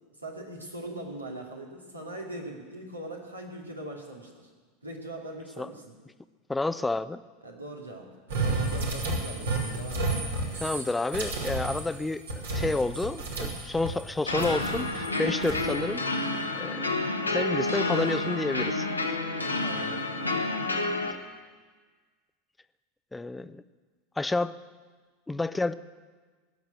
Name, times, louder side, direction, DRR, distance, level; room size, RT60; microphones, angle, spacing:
voice 1, 0.0-4.5 4.8-5.9 7.4-8.1 8.4-10.1 19.6-20.1, right 1 dB, 90° right, 0 dB, 2.4 m, -41 dB
voice 2, 6.5-7.2 10.6-16.0 16.5-16.9 17.3-18.9 21.0-21.2 23.1-23.6 24.2-24.5 25.3-25.7, left 2 dB, 10° left, 14 dB, 0.5 m, -30 dB
sound 1, 8.3-14.0 14.4-15.7, right 2 dB, 70° right, 2.9 m, -32 dB
sound 2, 14.3-21.1, left 2 dB, 90° left, 1.3 m, -29 dB
18.5 x 7.4 x 9.2 m, 1.4 s
figure-of-eight pair, 80°, 0 cm